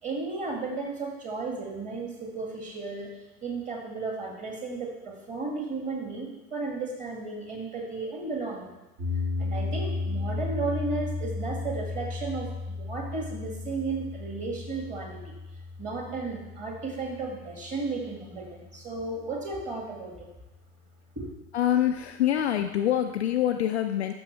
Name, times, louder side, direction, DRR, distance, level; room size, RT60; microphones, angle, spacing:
voice 1, 0.0-3.1 3.4-8.7 9.4-15.2 15.8-20.3 21.2-21.3, right 3 dB, 15° right, 0 dB, 2.1 m, -34 dB
sound 1, 9.0-19.2, left 3 dB, 45° right, 3.3 m, -35 dB
voice 2, 21.5-24.1, left 11 dB, 45° left, 6 dB, 0.5 m, -25 dB
12.5 x 6.1 x 3.4 m, 1.0 s
figure-of-eight pair, 105°, 46 cm